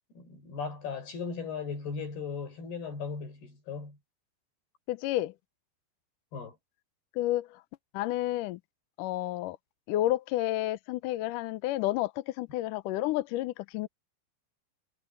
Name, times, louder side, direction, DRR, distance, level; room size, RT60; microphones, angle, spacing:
voice 1, 0.2-4.0 6.3-6.6, left 5 dB, 65° left, 7.8 m, -37 dB
voice 2, 4.9-5.3 7.2-7.6 7.9-8.6 9.0-9.6 9.9-13.9, left 15 dB, 85° left, 1.8 m, -30 dB
omnidirectional pair, 4.9 m